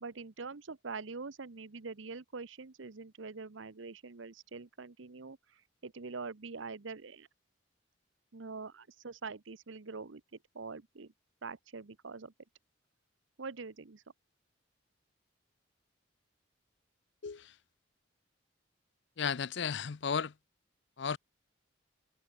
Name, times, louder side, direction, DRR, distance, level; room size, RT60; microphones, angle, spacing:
voice 1, 0.0-7.3 8.3-10.2 10.5-11.1 11.4-12.3 13.4-14.0, right 4 dB, 75° right, 0.9 m, -44 dB
voice 2, 19.2-20.3 21.0-21.2, left 6 dB, 60° left, 0.5 m, -34 dB
head